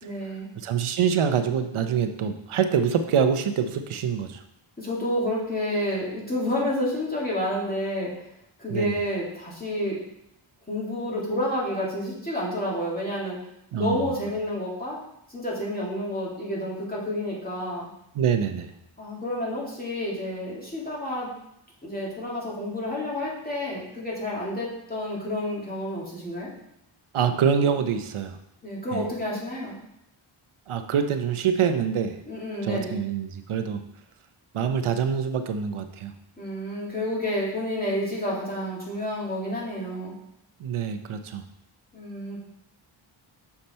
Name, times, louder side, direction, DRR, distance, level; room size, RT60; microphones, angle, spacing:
voice 1, 0.0-0.5 4.8-8.1 8.6-10.0 10.7-13.4 13.7-15.0 15.3-17.9 19.0-21.3 21.8-26.5 28.6-29.8 32.3-32.9 36.4-40.1 41.9-42.4, left 1 dB, 20° left, -5 dB, 2.4 m, -29 dB
voice 2, 0.6-4.4 8.7-9.0 13.7-14.1 18.1-18.7 27.1-28.4 28.9-29.1 30.7-32.2 32.6-33.8 34.5-36.1 40.6-41.4, right 7 dB, 75° right, 8 dB, 0.7 m, -25 dB
6.6 x 5.9 x 4.3 m, 0.80 s
wide cardioid pair, 115°, 50 cm